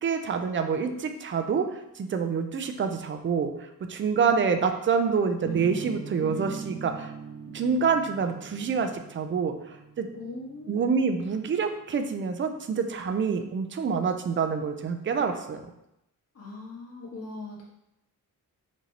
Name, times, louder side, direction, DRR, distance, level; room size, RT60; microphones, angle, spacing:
voice 1, 0.0-1.7 2.0-3.5 3.9-7.1 7.5-9.6 10.0-10.1 10.7-15.6, right 5 dB, 35° right, 7 dB, 0.4 m, -27 dB
sound 1, 5.4-11.3, right 5 dB, 80° right, 1.1 m, -41 dB
voice 2, 10.1-10.8 16.3-17.6, left 2 dB, 45° left, -5 dB, 1.5 m, -40 dB
4.5 x 3.9 x 2.8 m, 0.85 s
wide cardioid pair, 125°, 34 cm